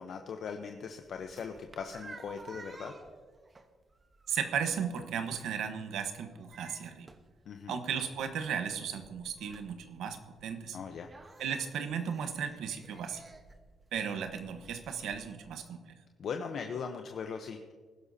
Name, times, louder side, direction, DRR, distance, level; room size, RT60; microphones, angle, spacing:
voice 1, 0.0-2.9 7.5-7.7 10.7-11.1 16.2-17.7, left 6 dB, 60° left, 5 dB, 0.8 m, -39 dB
sound 1, 0.6-15.6, right 3 dB, 25° right, 1.0 m, -55 dB
voice 2, 4.3-7.1 7.7-10.8 11.4-13.2 13.9-15.9, right 7 dB, 80° right, 7 dB, 1.1 m, -35 dB
20.0 x 11.5 x 2.8 m, 1.5 s
cardioid pair, 90°, 0 cm